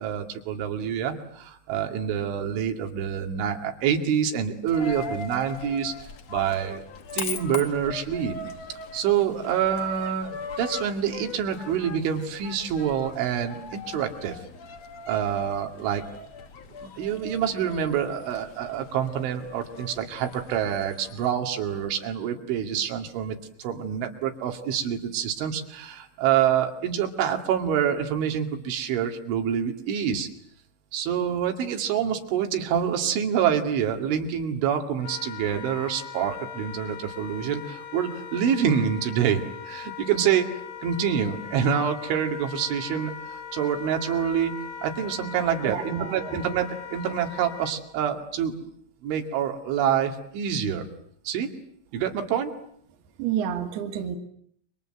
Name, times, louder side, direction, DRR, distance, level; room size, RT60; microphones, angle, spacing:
voice 1, 0.0-5.9 6.3-6.8 7.1-8.4 8.9-14.4 15.1-16.0 16.8-30.3 30.9-40.5 40.8-44.5 44.8-48.7 49.0-50.9 51.3-51.5 51.9-52.5, right 8 dB, 90° right, 4 dB, 4.7 m, -26 dB
Coin (dropping), 4.7-21.3, left 4 dB, 55° left, 1.9 m, -40 dB
Wind instrument woodwind instrument, 35.0-47.8, left 7 dB, 75° left, 5.1 m, -40 dB
voice 2, 45.6-46.4 53.2-54.2, right 8 dB, 65° right, 6 dB, 3.6 m, -29 dB
29.0 x 24.5 x 7.8 m, 0.68 s
omnidirectional pair, 5.3 m